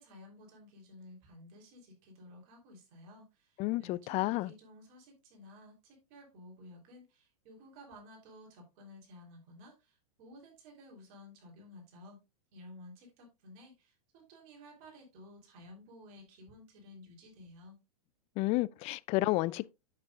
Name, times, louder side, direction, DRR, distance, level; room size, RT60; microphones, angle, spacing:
voice 1, 0.0-12.2 12.5-17.8, left 1 dB, 50° right, 3.4 m, -54 dB
voice 2, 3.6-4.5 18.4-19.7, left 19 dB, 35° left, 0.3 m, -31 dB
8.2 x 7.3 x 2.4 m
hypercardioid pair, 110°, 19 cm